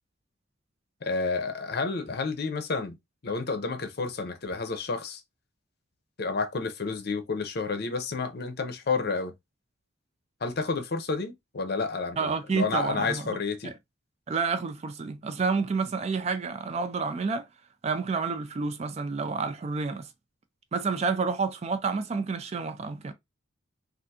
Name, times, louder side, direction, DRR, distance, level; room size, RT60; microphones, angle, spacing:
voice 1, 1.0-3.0 3.2-5.2 6.2-9.3 10.4-13.7, left 4 dB, 50° left, 0.6 m, -30 dB
voice 2, 12.2-13.4 13.6-13.7 14.3-17.5 17.8-20.1 20.7-23.1, right 4 dB, 30° right, 0.3 m, -29 dB
3.4 x 2.5 x 2.7 m
head